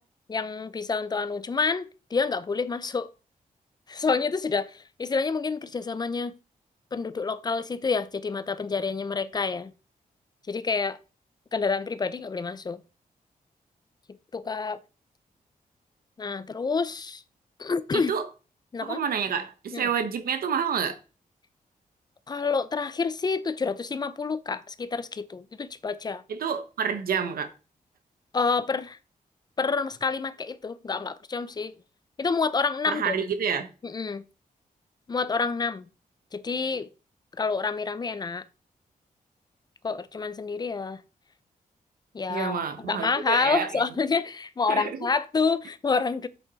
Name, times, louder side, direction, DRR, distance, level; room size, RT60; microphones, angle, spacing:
voice 1, 0.3-3.1 3.9-6.3 6.9-9.7 10.5-11.0 11.5-12.8 14.3-14.8 16.2-17.2 17.6-18.1 18.7-19.0 19.7-19.9 22.3-26.2 28.3-29.0 29.6-31.7 32.2-33.2 33.8-34.2 35.1-35.9 36.3-36.9 37.4-38.4 39.8-41.0 42.1-42.6 42.9-46.3, left 4 dB, 30° left, 0.6 m, -28 dB
voice 2, 17.9-18.3 18.8-21.0 26.3-27.5 32.9-33.7 42.3-43.8 44.7-45.0, right 7 dB, 85° right, 1.0 m, -28 dB
8.6 x 7.8 x 4.0 m
wide cardioid pair, 150°, 15 cm